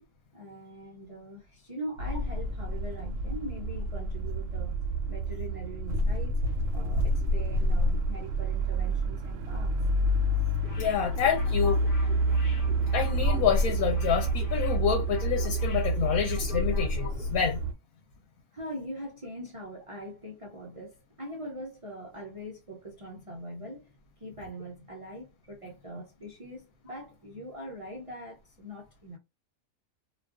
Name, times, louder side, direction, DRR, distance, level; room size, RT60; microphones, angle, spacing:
voice 1, 0.3-4.8 5.1-6.4 6.7-9.7 18.5-23.9 24.2-29.2, equal, 50° right, 0.4 m, -42 dB
sound 1, 2.0-17.7, right 1 dB, 70° right, 0.9 m, -28 dB
sound 2, 10.6-17.2 17.5-17.6, left 4 dB, 45° left, 0.7 m, -44 dB
voice 2, 10.8-11.8 12.9-17.6, left 8 dB, 85° left, 1.1 m, -28 dB
2.4 x 2.3 x 2.3 m
omnidirectional pair, 1.5 m